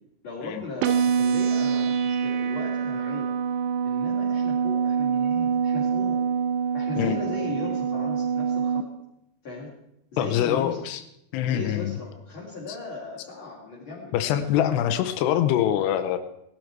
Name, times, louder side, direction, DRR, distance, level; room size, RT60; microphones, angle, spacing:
voice 1, 0.2-3.3 3.8-6.2 6.7-8.9 9.4-9.7 10.1-10.8 11.4-14.1, left 3 dB, 35° left, -6 dB, 3.4 m, -37 dB
sound 1, 0.8-8.8, right 7 dB, 90° right, 3.0 m, -25 dB
voice 2, 10.2-11.0 11.3-12.0 14.1-16.2, left 11 dB, 85° left, 10 dB, 2.9 m, -24 dB
19.0 x 11.5 x 4.7 m, 0.81 s
omnidirectional pair, 4.7 m